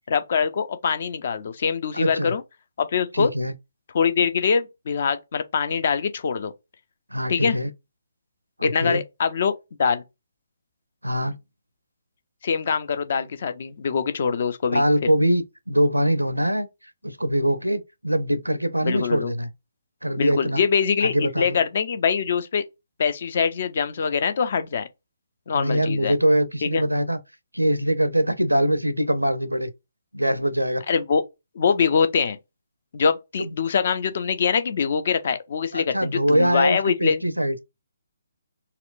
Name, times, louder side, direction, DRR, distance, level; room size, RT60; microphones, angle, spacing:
voice 1, 0.1-2.4 2.8-3.3 3.9-6.5 7.3-7.6 8.6-10.0 12.4-15.1 18.8-19.3 20.2-22.6 23.0-24.9 25.5-26.1 26.6-26.8 30.9-31.2 31.6-32.4 32.9-37.2, left 6 dB, 45° left, 0.5 m, -23 dB
voice 2, 1.9-2.3 3.1-3.5 7.1-7.7 8.6-9.0 11.0-11.4 14.7-16.7 17.0-19.5 20.0-20.6 21.0-21.6 25.5-27.2 27.5-29.7 30.1-30.8 33.4-33.5 35.7-37.6, equal, 85° right, 0.6 m, -23 dB
4.2 x 2.1 x 2.5 m
figure-of-eight pair, 140°, 0 cm